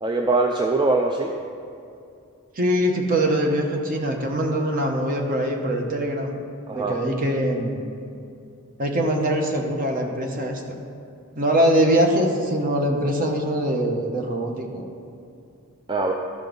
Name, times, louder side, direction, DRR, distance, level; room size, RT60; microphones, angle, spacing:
voice 1, 0.0-1.3 6.7-7.0 15.9-16.1, right 3 dB, 20° right, 2 dB, 0.4 m, -22 dB
voice 2, 2.6-6.4 6.7-7.8 8.8-10.6 11.4-14.8, right 1 dB, 40° right, 2 dB, 1.0 m, -23 dB
13.5 x 5.3 x 3.9 m, 2.5 s
head